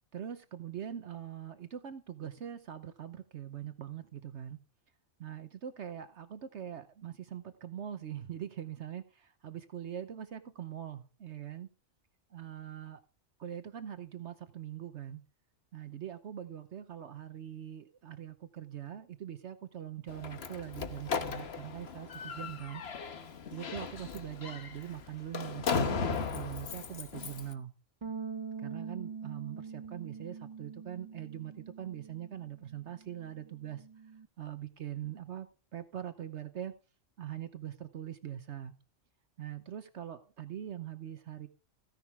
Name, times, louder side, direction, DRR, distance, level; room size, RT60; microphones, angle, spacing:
voice 1, 0.1-4.6 5.2-11.7 12.3-13.0 13.4-15.2 15.7-22.8 23.5-27.7 28.6-33.8 34.4-36.7 37.2-38.7 39.4-41.5, right 10 dB, 65° right, 1.1 m, -42 dB
Slam, 20.1-27.5, left 5 dB, 55° left, 1.3 m, -37 dB
Bass guitar, 28.0-34.3, right 6 dB, 40° right, 0.4 m, -44 dB
15.5 x 10.5 x 3.5 m
omnidirectional pair, 1.3 m